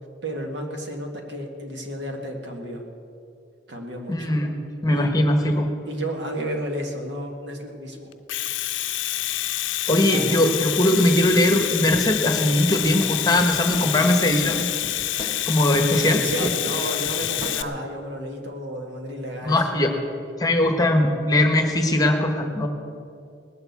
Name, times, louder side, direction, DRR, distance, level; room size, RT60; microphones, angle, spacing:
voice 1, 0.2-2.9 3.7-4.4 4.9-5.1 5.9-8.1 10.1-10.4 16.0-19.6, right 1 dB, 70° right, 2 dB, 1.9 m, -32 dB
voice 2, 4.1-4.6 4.8-5.7 9.9-14.7 15.1-16.5 19.4-19.9 20.4-22.7, left 1 dB, 20° left, 4 dB, 1.2 m, -20 dB
Domestic sounds home sounds, 8.1-17.6, left 14 dB, 80° left, 0.5 m, -27 dB
sound 1, 11.8-17.7, left 1 dB, 10° right, 2.2 m, -39 dB
19.5 x 7.0 x 8.2 m, 2.5 s
head